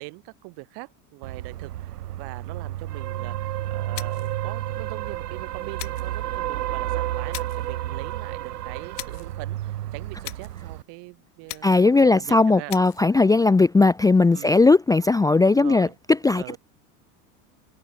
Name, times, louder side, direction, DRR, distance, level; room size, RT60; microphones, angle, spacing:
voice 1, 0.0-12.7 14.3-14.6 15.4-16.0 16.4-16.6, right 31 dB, 60° right, 2.7 m, -42 dB
sound 1, 1.2-10.8, right 13 dB, 80° right, 1.2 m, -31 dB
sound 2, 3.9-4.4 5.8-6.2 7.3-7.7 9.0-9.3 10.2-10.6 11.5-11.9 12.7-13.1, left 17 dB, 75° left, 1.4 m, -39 dB
voice 2, 11.6-16.6, left 3 dB, 10° left, 0.6 m, -18 dB
hypercardioid pair, 85°, 46 cm